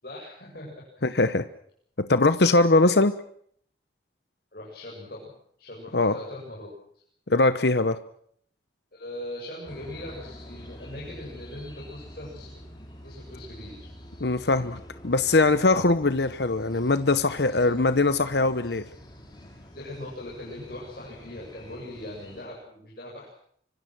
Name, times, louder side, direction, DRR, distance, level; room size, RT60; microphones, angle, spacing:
voice 1, 0.0-1.1 2.8-2.9 4.5-5.3 5.6-6.7 8.9-12.6 13.0-13.7 17.5-17.6 19.7-23.3, left 1 dB, 55° left, -3 dB, 7.8 m, -40 dB
voice 2, 1.0-1.5 2.0-3.1 5.9-6.2 7.3-8.0 14.2-18.9, left 2 dB, 70° left, 12 dB, 1.0 m, -21 dB
sound 1, 9.7-22.5, equal, 25° left, 6.6 m, -46 dB
25.5 x 25.0 x 6.3 m, 0.65 s
head